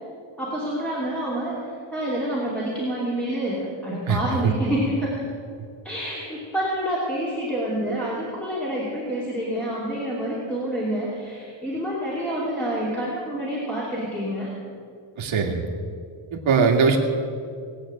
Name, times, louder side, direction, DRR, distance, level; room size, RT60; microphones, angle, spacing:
voice 1, 0.4-5.3 5.8-14.5, right 1 dB, 5° left, -8 dB, 2.8 m, -28 dB
voice 2, 4.1-4.5 15.2-15.7 16.3-17.0, right 5 dB, 75° right, 1 dB, 2.2 m, -21 dB
19.5 x 8.4 x 8.8 m, 2.3 s
wide cardioid pair, 175°, 49 cm